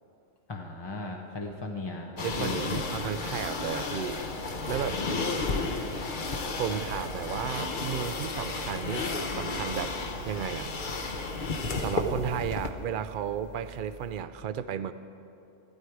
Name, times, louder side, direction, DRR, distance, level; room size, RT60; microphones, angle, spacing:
voice 1, 0.5-2.1 2.4-2.8, left 2 dB, 25° left, 1 dB, 0.6 m, -36 dB
sound 1, 2.2-12.7, left 3 dB, 45° left, 0.9 m, -32 dB
voice 2, 2.2-4.2 4.7-5.0 6.6-9.1 9.3-10.0 10.3-10.7 11.7-14.9, right 8 dB, 60° right, 12 dB, 0.5 m, -33 dB
sound 2, 6.4-14.2, right 3 dB, 45° right, 0.9 m, -48 dB
14.5 x 12.5 x 4.7 m, 2.8 s
omnidirectional pair, 1.3 m